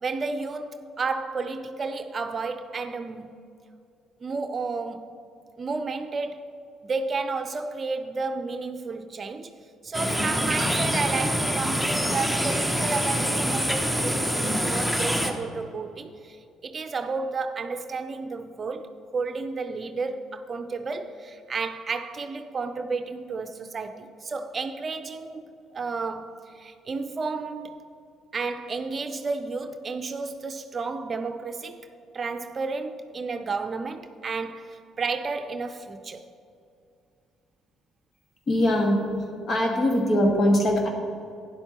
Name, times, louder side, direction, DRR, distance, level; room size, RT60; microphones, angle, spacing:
voice 1, 0.0-3.3 4.2-5.2 5.6-6.5 6.8-9.5 9.8-16.4 16.6-27.8 28.3-31.8 32.1-36.3, right 4 dB, 40° right, 0.6 m, -32 dB
sound 1, 9.9-15.3, equal, 5° left, 1.2 m, -25 dB
voice 2, 38.5-39.0 39.5-40.9, left 1 dB, 45° left, 1.8 m, -21 dB
12.0 x 10.0 x 3.0 m
hypercardioid pair, 50°, 0 cm